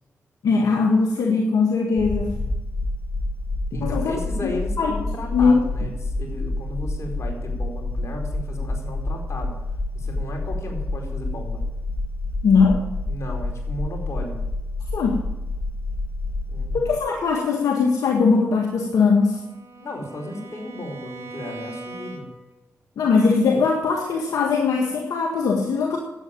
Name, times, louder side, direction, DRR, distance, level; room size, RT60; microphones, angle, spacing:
voice 1, 0.4-2.3 3.7-4.2 4.8-4.9 5.3-5.6 12.4-12.8 14.9-15.2 16.7-19.4 23.0-26.0, left 4 dB, 80° left, 1 dB, 1.7 m, -20 dB
sound 1, 2.0-16.9, left 2 dB, 25° left, 2.1 m, -28 dB
voice 2, 3.7-9.5 9.9-11.6 13.1-14.4 16.5-17.0 19.8-22.3, left 1 dB, 55° left, 1 dB, 4.6 m, -34 dB
Bowed string instrument, 18.7-22.6, right 3 dB, 55° right, 2.6 m, -41 dB
11.5 x 8.8 x 9.0 m, 0.98 s
supercardioid pair, 45°, 6 cm